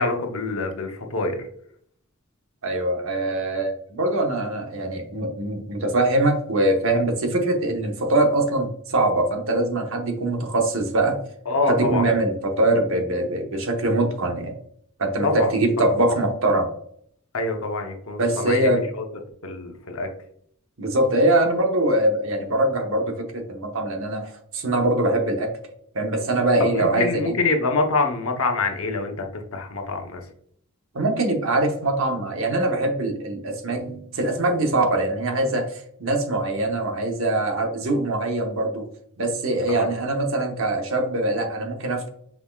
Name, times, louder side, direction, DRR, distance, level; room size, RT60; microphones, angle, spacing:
voice 1, 0.0-1.4 11.5-12.1 15.2-15.5 15.8-15.9 17.3-19.0 19.4-20.1 26.7-30.2 39.7-39.9, left 3 dB, 70° left, 3 dB, 0.8 m, -25 dB
voice 2, 2.6-11.2 11.7-14.5 15.0-16.7 18.2-18.9 20.8-25.5 25.9-27.3 30.9-38.8 39.2-42.1, right 2 dB, 60° right, 3 dB, 0.9 m, -23 dB
5.9 x 3.5 x 2.3 m, 0.64 s
head